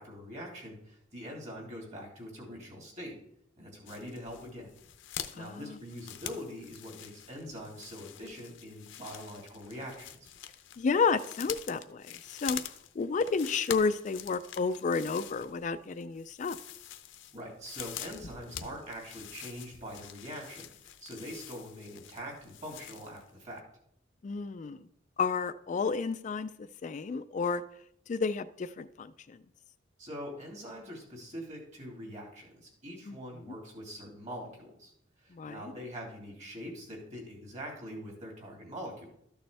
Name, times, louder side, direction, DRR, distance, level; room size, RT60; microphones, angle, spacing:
voice 1, 0.0-3.1 3.6-4.7 5.3-10.3 17.3-23.6 30.0-34.9 35.2-39.1, equal, 40° right, 0 dB, 2.8 m, -43 dB
sound 1, 3.9-23.3 23.6-23.7, left 10 dB, 75° left, 0.7 m, -45 dB
voice 2, 10.8-12.6 13.0-16.6 24.2-24.8 25.2-27.6 28.1-29.4 33.1-33.2 35.3-35.6, left 5 dB, 40° left, 12 dB, 0.3 m, -31 dB
13.0 x 6.7 x 3.4 m, 0.74 s
head